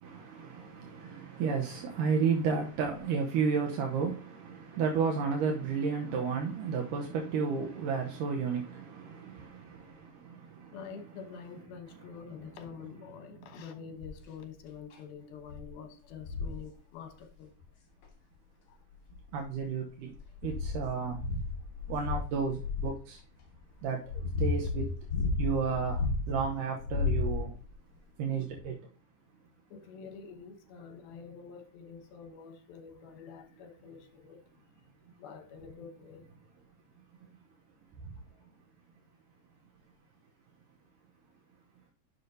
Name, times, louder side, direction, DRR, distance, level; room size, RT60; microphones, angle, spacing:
voice 1, 0.0-10.8 19.3-20.1 20.4-21.4 21.9-23.2 23.8-24.9 25.4-27.6 28.2-28.8 38.0-38.1, right 5 dB, 70° right, 2.2 m, -32 dB
voice 2, 10.7-17.5 18.7-18.8 23.7-23.8 29.7-34.6 35.2-36.3 38.3-38.4, left 6 dB, 75° left, 2.9 m, -47 dB
sound 1, 14.0-14.3 14.9-15.0 15.5-15.7 16.2-16.6 18.0-18.1 18.9-19.6 20.1-23.0 23.7-26.4 26.8-27.7 28.6-28.7, left 4 dB, 45° left, 2.1 m, -33 dB
10.5 x 6.0 x 2.7 m
omnidirectional pair, 4.4 m